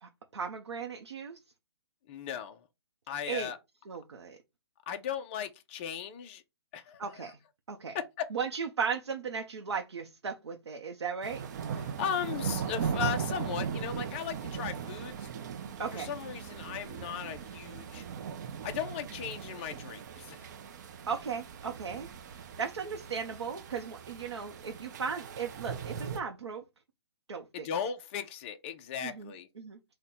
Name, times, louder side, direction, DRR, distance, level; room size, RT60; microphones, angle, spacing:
voice 1, 0.0-1.4 3.3-3.5 3.9-4.4 7.0-7.4 7.7-8.0 8.3-11.4 15.8-16.1 21.1-22.1 22.4-26.6 27.3-27.7 29.0-29.8, right 6 dB, 80° right, 0.7 m, -36 dB
voice 2, 2.1-2.6 3.1-3.6 4.9-6.4 6.7-7.3 7.9-8.3 11.8-15.3 15.9-18.0 18.6-20.5 27.5-29.5, left 8 dB, 25° left, 0.3 m, -37 dB
sound 1, 11.2-26.2, right 7 dB, 45° right, 0.5 m, -38 dB
3.8 x 2.1 x 4.2 m
hypercardioid pair, 145°, 14 cm